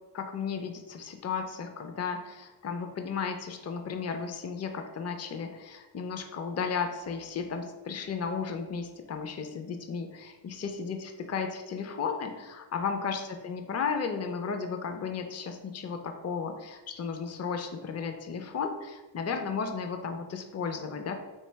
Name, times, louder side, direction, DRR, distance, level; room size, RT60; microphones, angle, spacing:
voice 1, 0.1-21.2, left 5 dB, 35° left, 5 dB, 0.5 m, -34 dB
3.2 x 3.2 x 4.4 m, 1.2 s
wide cardioid pair, 75°, 44 cm